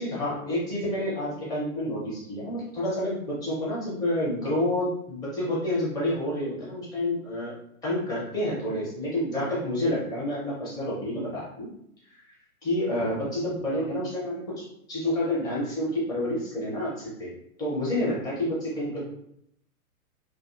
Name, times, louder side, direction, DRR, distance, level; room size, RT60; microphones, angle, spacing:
voice 1, 0.0-7.5 7.8-11.7 12.0-12.4 12.6-17.3 17.6-19.1, left 1 dB, 10° left, -7 dB, 0.6 m, -29 dB
2.4 x 2.3 x 2.4 m, 0.73 s
figure-of-eight pair, 120°, 44 cm